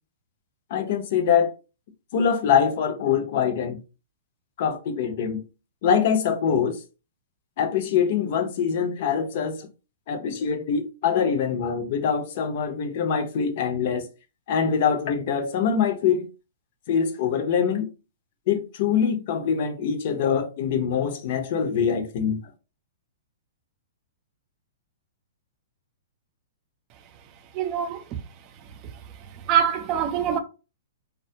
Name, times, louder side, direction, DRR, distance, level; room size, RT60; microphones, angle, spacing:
voice 1, 0.7-1.5 2.1-3.8 4.6-5.4 5.8-6.8 7.6-9.7 10.1-14.1 14.5-16.2 16.9-17.9 18.5-22.4, left 7 dB, 55° left, 0.6 m, -24 dB
voice 2, 27.5-28.0 29.5-30.4, right 9 dB, 35° right, 0.4 m, -23 dB
2.2 x 2.1 x 2.6 m
hypercardioid pair, 125°, 0 cm